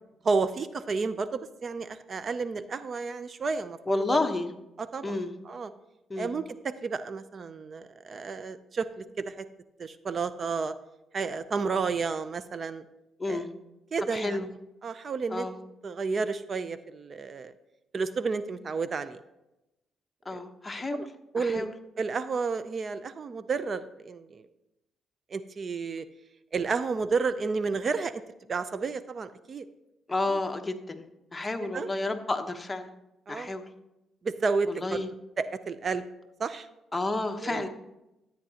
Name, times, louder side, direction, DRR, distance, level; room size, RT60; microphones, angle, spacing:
voice 1, 0.2-4.2 4.8-5.2 5.5-5.7 6.2-9.4 9.8-10.7 11.1-12.8 13.3-13.4 13.9-14.5 14.8-15.5 15.8-17.5 17.9-19.2 20.3-20.4 20.9-21.1 21.3-21.7 22.0-24.4 25.3-26.1 26.5-28.1 28.5-29.7 30.3-30.4 31.7-31.9 33.3-33.6 34.2-35.0 35.4-36.0 36.4-36.7 37.4-37.7, right 4 dB, 45° right, 13 dB, 0.5 m, -31 dB
voice 2, 3.9-4.5 5.0-5.3 6.1-6.3 13.2-13.5 14.1-14.5 15.3-15.6 20.2-21.0 21.4-21.7 30.1-31.0 31.3-32.9 33.3-33.6 34.7-35.1 36.9-37.7, left 2 dB, 20° left, 6 dB, 1.0 m, -30 dB
12.5 x 8.8 x 2.9 m, 0.93 s
cardioid pair, 90°, 0 cm